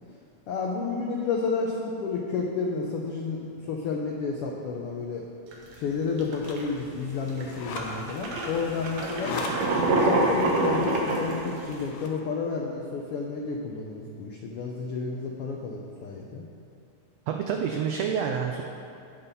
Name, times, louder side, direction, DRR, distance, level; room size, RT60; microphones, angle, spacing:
voice 1, 0.5-3.4 3.7-5.3 5.7-9.4 9.9-16.4, left 4 dB, 85° left, 0 dB, 1.2 m, -31 dB
sound 1, 5.5-5.7 6.2-6.7 7.3-7.4 7.8-11.8, right 2 dB, 70° right, 2.4 m, -25 dB
sound 2, 6.3-12.2, left 3 dB, 70° left, 1.6 m, -39 dB
voice 2, 17.3-18.6, right 7 dB, 85° right, 3 dB, 1.4 m, -28 dB
16.5 x 5.8 x 4.1 m, 2.5 s
omnidirectional pair, 3.6 m